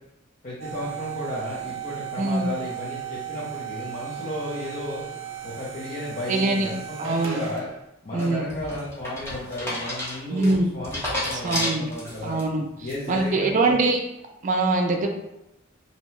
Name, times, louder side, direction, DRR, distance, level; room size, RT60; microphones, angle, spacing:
voice 1, 0.4-5.0 5.4-7.7 8.0-12.4 12.8-13.7, left 1 dB, 45° left, -8 dB, 0.6 m, -33 dB
sound 1, 0.6-7.8, right 9 dB, 90° right, 0.6 m, -36 dB
voice 2, 2.2-2.5 6.3-6.7 7.0-7.4 8.1-8.5 10.3-10.7 11.4-11.9 12.2-12.7 13.1-14.0 14.4-15.1, right 3 dB, 40° right, 3 dB, 0.4 m, -23 dB
sound 2, 8.2-12.4 12.9-13.3, left 1 dB, 15° left, 0.8 m, -31 dB
2.7 x 2.1 x 3.1 m, 0.89 s
head